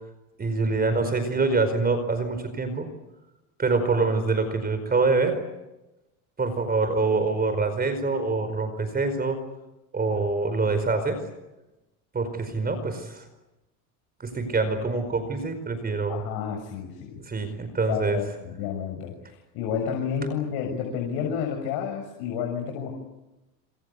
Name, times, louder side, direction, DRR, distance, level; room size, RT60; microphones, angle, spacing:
voice 1, 0.4-2.9 3.6-5.4 6.4-9.4 9.9-11.2 12.1-13.2 14.2-16.2 17.3-18.2, right 3 dB, 20° right, 10 dB, 4.9 m, -25 dB
voice 2, 16.1-17.2 17.9-22.9, left 7 dB, 65° left, 2 dB, 6.9 m, -30 dB
27.0 x 26.0 x 8.5 m, 1.0 s
supercardioid pair, 115°, 43 cm